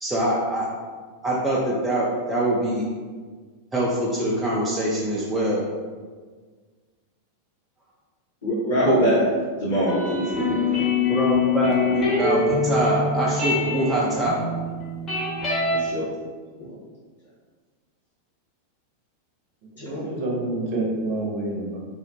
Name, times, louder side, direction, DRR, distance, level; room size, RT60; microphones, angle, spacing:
voice 1, 0.0-0.7 1.2-2.8 3.7-5.6 11.1-14.4, right 1 dB, 10° right, -6 dB, 0.4 m, -24 dB
voice 2, 8.4-9.3 9.6-10.8 15.7-16.1 16.6-16.7 19.8-20.0, equal, 65° left, -11 dB, 1.0 m, -23 dB
sound 1, 9.7-15.8, left 4 dB, 25° left, 0.9 m, -24 dB
voice 3, 19.8-21.8, right 2 dB, 45° right, -2 dB, 0.7 m, -27 dB
2.7 x 2.1 x 2.6 m, 1.5 s
figure-of-eight pair, 90°, 0 cm